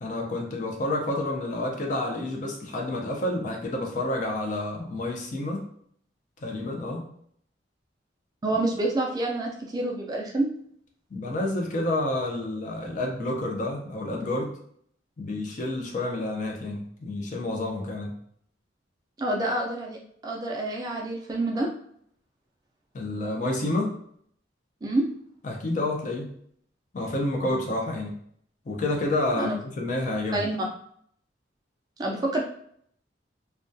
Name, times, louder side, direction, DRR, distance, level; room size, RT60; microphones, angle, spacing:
voice 1, 0.0-5.7 6.4-7.0 11.1-14.5 15.2-18.1 22.9-24.0 25.4-26.3 26.9-28.2 28.7-30.4, left 2 dB, 45° left, 1 dB, 0.5 m, -29 dB
voice 2, 8.4-10.5 19.2-21.7 24.8-25.1 29.4-29.6 30.3-30.6 32.0-32.4, right 2 dB, 20° right, -1 dB, 0.3 m, -27 dB
2.2 x 2.2 x 2.5 m, 0.65 s
head